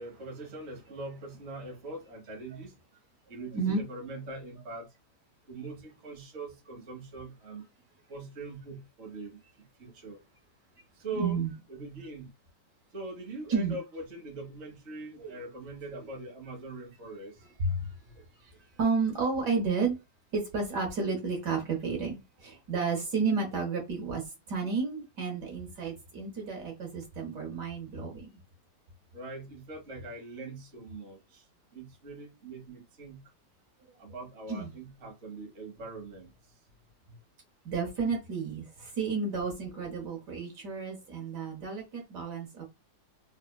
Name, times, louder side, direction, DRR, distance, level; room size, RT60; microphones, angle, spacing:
voice 1, 0.0-2.7 3.3-4.9 5.5-7.6 8.1-9.4 9.8-10.2 11.0-12.3 12.9-17.3 29.1-31.4 31.7-33.2 34.0-36.3, right 2 dB, 40° right, 1.3 m, -42 dB
voice 2, 11.2-11.5 13.5-13.7 15.2-15.3 15.9-16.0 17.6-18.0 18.4-18.5 18.8-20.0 20.3-28.3 34.5-34.7 37.6-42.6, right 4 dB, 65° right, 1.5 m, -31 dB
3.5 x 3.4 x 2.2 m
omnidirectional pair, 2.1 m